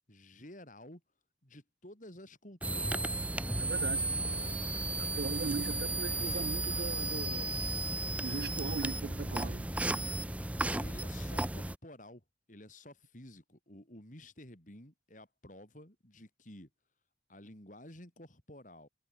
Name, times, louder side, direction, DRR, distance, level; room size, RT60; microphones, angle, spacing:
voice 1, 0.1-1.0 1.4-3.1 10.8-12.2 12.5-16.7 17.3-18.9, left 1 dB, 45° left, 5.0 m, -52 dB
sound 1, 2.6-11.8, right 2 dB, 10° right, 0.6 m, -34 dB
voice 2, 3.6-4.1 5.0-7.7 8.2-10.1, right 5 dB, 55° right, 0.4 m, -39 dB
head